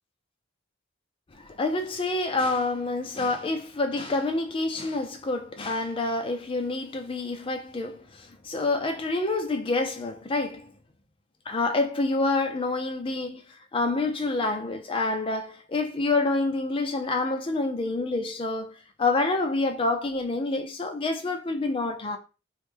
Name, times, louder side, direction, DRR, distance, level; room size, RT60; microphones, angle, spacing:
voice 1, 1.3-10.7 11.5-13.4 13.7-22.2, left 2 dB, 25° left, 0.4 m, -27 dB
3.1 x 2.1 x 3.3 m
head